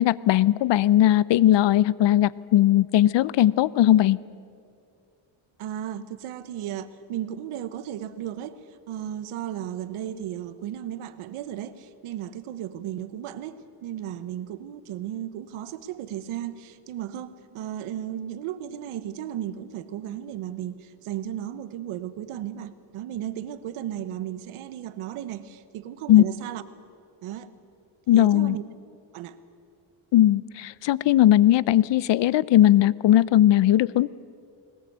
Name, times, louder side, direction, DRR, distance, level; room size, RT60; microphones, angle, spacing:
voice 1, 0.0-4.2 26.1-26.2 28.1-28.6 30.1-34.1, left 13 dB, 60° left, 21 dB, 0.6 m, -18 dB
voice 2, 5.6-26.6 27.2-27.5 28.1-28.6 29.1-29.4, right 11 dB, 90° right, 13 dB, 1.2 m, -35 dB
20.5 x 20.0 x 8.0 m, 2.4 s
cardioid pair, 105°, 48 cm